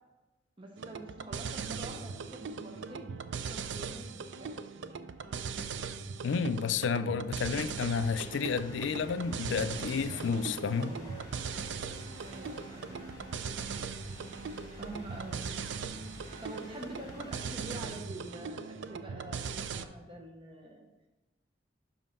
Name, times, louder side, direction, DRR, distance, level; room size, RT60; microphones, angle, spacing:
voice 1, 0.6-4.6 12.2-13.3 14.8-15.6 16.1-20.9, right 1 dB, 25° right, 0.9 m, -47 dB
sound 1, 0.8-19.8, right 5 dB, 75° right, 0.4 m, -39 dB
voice 2, 6.2-10.9, left 5 dB, 80° left, 0.4 m, -31 dB
sound 2, 7.8-18.0, left 1 dB, 25° left, 2.3 m, -49 dB
5.8 x 5.3 x 5.4 m
head